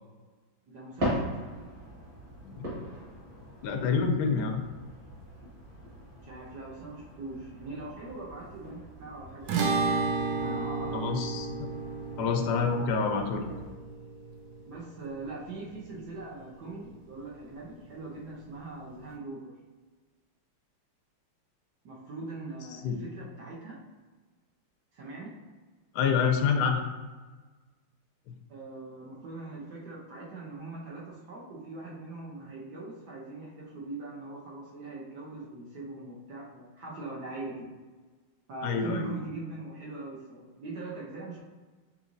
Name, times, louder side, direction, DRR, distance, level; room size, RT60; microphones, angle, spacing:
voice 1, 0.7-1.5 6.2-11.2 14.7-19.5 21.8-23.8 24.9-25.3 28.5-37.7 38.5-41.4, right 3 dB, 60° right, -4 dB, 1.2 m, -41 dB
sound 1, 1.0-13.7, equal, 45° right, 2.0 m, -41 dB
voice 2, 2.4-2.8 3.6-4.6 10.9-11.7 12.2-13.5 22.8-23.0 25.9-26.8 28.3-28.4 38.6-39.1, left 5 dB, 80° left, 4 dB, 0.9 m, -27 dB
sound 2, 9.5-16.0, right 4 dB, 85° right, 0.8 m, -33 dB
5.8 x 2.6 x 2.6 m, 1.3 s
omnidirectional pair, 2.3 m